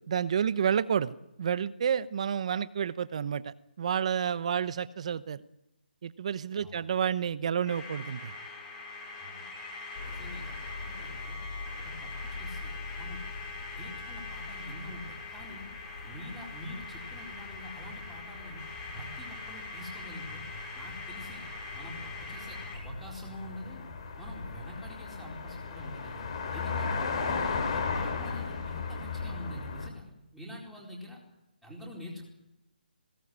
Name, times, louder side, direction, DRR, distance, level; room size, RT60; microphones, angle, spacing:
voice 1, 0.1-5.4 6.0-8.3, right 8 dB, 40° right, 15 dB, 0.9 m, -30 dB
sound 1, 7.7-22.9, left 3 dB, 15° left, 6.1 m, -43 dB
sound 2, 10.0-29.9, left 4 dB, 35° left, 3.5 m, -38 dB
voice 2, 10.0-10.6 10.8-11.4 11.8-13.2 13.7-15.7 16.0-18.6 18.9-20.4 20.7-21.5 21.7-23.9 24.2-26.2 26.5-27.0 27.7-30.1 30.3-31.2 31.6-32.2, equal, ahead, -3 dB, 4.4 m, -45 dB
21.5 x 17.5 x 9.7 m, 0.90 s
hypercardioid pair, 170°, 5 cm